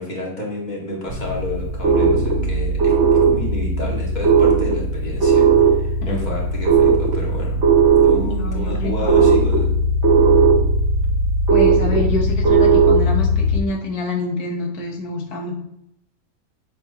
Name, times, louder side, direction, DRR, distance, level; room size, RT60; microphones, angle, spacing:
voice 1, 0.0-7.6 8.0-9.7, left 1 dB, 30° left, -4 dB, 2.3 m, -30 dB
sound 1, 1.1-13.6, right 4 dB, 50° right, 1.3 m, -17 dB
voice 2, 8.2-9.4 11.5-15.6, left 2 dB, 90° left, 1 dB, 1.7 m, -27 dB
8.9 x 6.6 x 3.0 m, 0.82 s
omnidirectional pair, 1.6 m